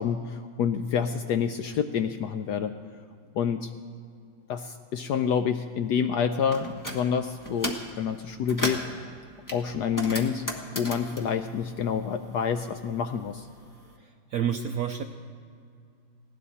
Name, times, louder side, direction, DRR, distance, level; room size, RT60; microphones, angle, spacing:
voice 1, 0.0-2.8 3.3-3.7 4.5-8.9 9.5-13.5, left 7 dB, 75° left, 8 dB, 1.0 m, -28 dB
sound 1, 6.5-7.0 7.4-7.9 8.3-8.9 9.5-12.4 12.7-13.8, equal, 10° left, 1.2 m, -35 dB
voice 2, 14.0-15.0, right 8 dB, 75° right, 6 dB, 0.8 m, -29 dB
18.5 x 17.0 x 4.2 m, 2.4 s
omnidirectional pair, 2.2 m